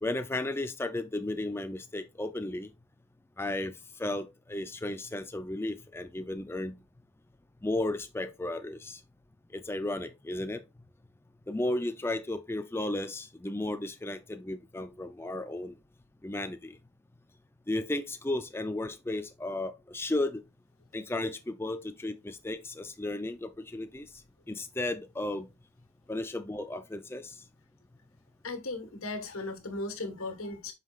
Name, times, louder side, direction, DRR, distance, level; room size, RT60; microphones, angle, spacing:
voice 1, 0.0-2.7 3.4-3.7 4.0-6.8 7.6-9.0 9.5-10.6 11.5-15.8 16.2-16.8 17.7-20.4 20.9-24.1 24.5-25.5 26.1-27.3, left 1 dB, 10° left, 0.4 m, -34 dB
voice 2, 28.4-30.7, left 2 dB, 85° left, 1.4 m, -37 dB
8.1 x 5.6 x 2.4 m
head